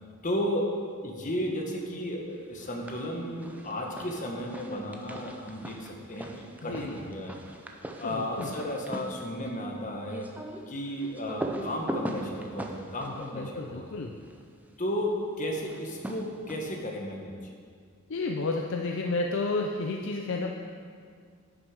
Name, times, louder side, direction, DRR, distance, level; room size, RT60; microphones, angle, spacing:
voice 1, 0.2-0.6 1.0-7.3 8.0-10.3 10.7-14.0 14.8-17.3, equal, 35° left, 0 dB, 1.2 m, -34 dB
sound 1, 2.6-3.1 3.4-14.4 15.7-16.9, right 1 dB, 5° right, 0.5 m, -40 dB
voice 2, 6.6-7.0 8.0-8.5 13.0-14.2 18.1-20.5, left 3 dB, 55° left, 2 dB, 0.5 m, -31 dB
10.5 x 6.3 x 4.8 m, 2.1 s
head